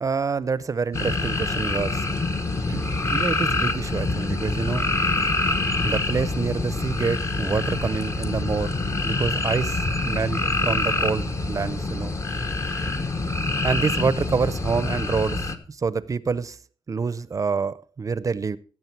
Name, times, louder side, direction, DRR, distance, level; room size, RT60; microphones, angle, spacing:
voice 1, 0.0-2.1 2.7-4.9 5.8-8.8 9.0-12.2 13.6-16.6 16.9-18.6, right 5 dB, 35° right, 0.6 m, -27 dB
sound 1, 0.9-15.6, left 2 dB, 35° left, 1.1 m, -26 dB
17.0 x 7.6 x 4.5 m
wide cardioid pair, 130°, 9 cm